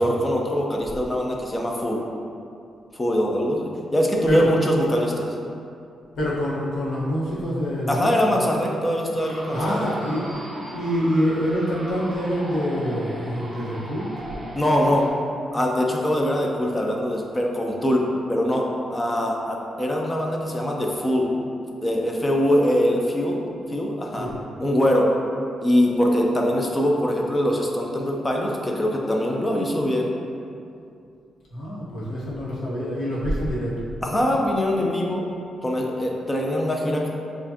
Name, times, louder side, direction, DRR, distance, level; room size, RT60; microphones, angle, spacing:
voice 1, 0.0-2.0 2.9-5.3 7.9-9.9 14.5-15.1 15.5-21.3 21.8-24.3 24.6-25.1 25.6-30.1 34.0-35.3 35.6-37.1, equal, 15° left, -1 dB, 0.5 m, -23 dB
voice 2, 6.1-8.2 9.5-10.3 10.7-14.2 24.1-24.3 31.5-33.8, equal, 75° left, -7 dB, 1.2 m, -26 dB
sound 1, 9.2-15.1, right 1 dB, 15° right, 0.7 m, -37 dB
7.0 x 2.5 x 2.8 m, 2.5 s
wide cardioid pair, 145°, 0 cm